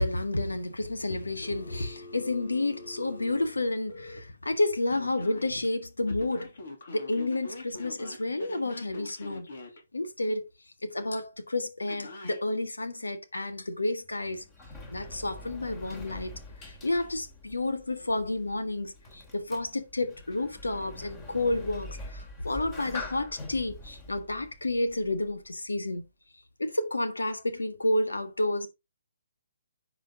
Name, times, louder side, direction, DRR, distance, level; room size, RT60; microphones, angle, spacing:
voice 1, 0.0-6.5 6.9-9.5 9.9-10.4 10.9-14.4 14.9-16.3 16.6-26.0 26.6-28.7, left 2 dB, 85° left, 1.7 m, -30 dB
Telephone, 1.4-4.2 4.9-5.5 6.1-9.8 11.9-12.4, left 2 dB, 60° left, 3.2 m, -45 dB
Sliding door, 14.0-25.5, left 2 dB, 20° left, 2.8 m, -45 dB
10.5 x 5.1 x 3.8 m
figure-of-eight pair, 140°, 0 cm